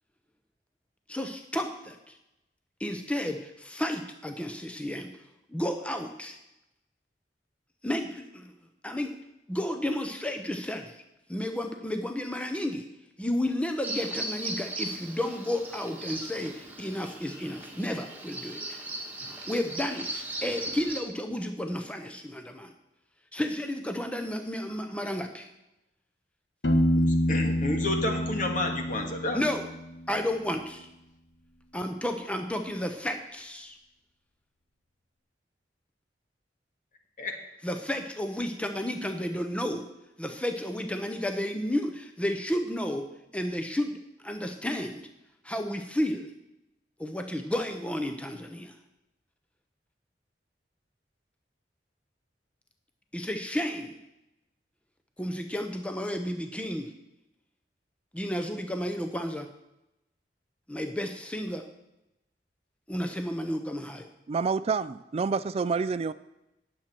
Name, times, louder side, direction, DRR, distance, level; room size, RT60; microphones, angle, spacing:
voice 1, 1.1-2.2 2.8-5.2 5.5-6.4 7.8-8.5 8.8-9.1 9.5-11.0 11.3-12.9 13.2-18.8 19.4-22.7 23.3-25.5 29.3-29.7 30.1-30.9 31.7-33.8 37.6-39.8 40.2-43.0 43.3-44.0 44.2-45.1 45.4-46.3 47.0-48.7 53.1-54.0 55.2-56.9 58.1-59.5 60.7-61.7 62.9-64.1, left 1 dB, 5° left, 6 dB, 0.7 m, -32 dB
Bird vocalization bird call bird song, 13.8-21.0, right 2 dB, 10° right, 1.7 m, -38 dB
Piano, 26.6-30.3, equal, 85° left, 1.4 m, -27 dB
voice 2, 26.9-29.4 37.2-37.3, left 2 dB, 50° left, 3 dB, 1.9 m, -30 dB
voice 3, 64.3-66.1, right 5 dB, 35° right, 15 dB, 0.3 m, -28 dB
19.0 x 7.5 x 4.5 m, 0.90 s
head